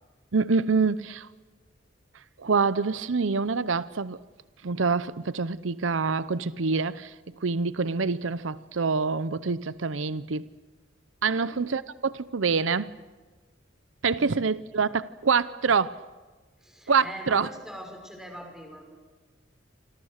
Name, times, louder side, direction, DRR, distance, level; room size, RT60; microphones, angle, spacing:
voice 1, 0.3-1.3 2.4-4.2 4.6-7.1 7.4-10.5 11.2-12.9 14.0-16.0 16.9-17.5, right 4 dB, 85° right, 0.7 m, -26 dB
voice 2, 16.6-18.8, equal, 5° right, 6.1 m, -42 dB
28.0 x 25.5 x 6.6 m
head